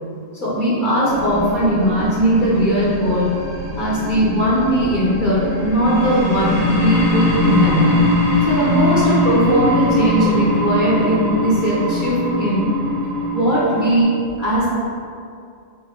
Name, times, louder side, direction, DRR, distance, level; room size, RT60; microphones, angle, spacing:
voice 1, 0.4-3.3 3.8-7.9 8.5-12.6 13.3-14.1 14.4-14.7, equal, 50° left, -8 dB, 1.0 m, -18 dB
sound 1, 1.1-14.0, left 1 dB, 80° right, 1.3 m, -21 dB
4.4 x 2.8 x 3.6 m, 2.4 s
omnidirectional pair, 1.1 m